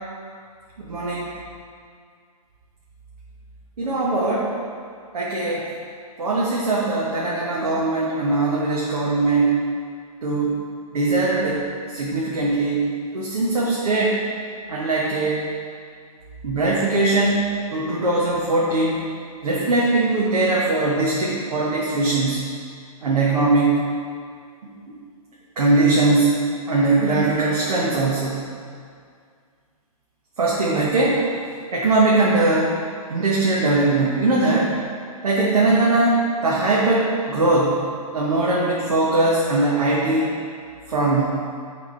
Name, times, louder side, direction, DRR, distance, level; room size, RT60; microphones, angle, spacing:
voice 1, 0.8-1.3 3.8-4.5 5.1-5.7 6.2-9.6 10.2-10.6 10.9-11.7 11.9-12.9 13.1-14.2 14.7-15.5 16.4-19.1 19.4-22.5 23.0-23.8 25.6-26.4 26.7-28.5 30.4-31.2 31.7-32.7 33.1-34.7 35.2-37.8 38.1-40.3 40.9-41.3, right 2 dB, 70° right, -5 dB, 1.3 m, -20 dB
9.3 x 3.8 x 3.9 m, 2.2 s
hypercardioid pair, 170°, 20 cm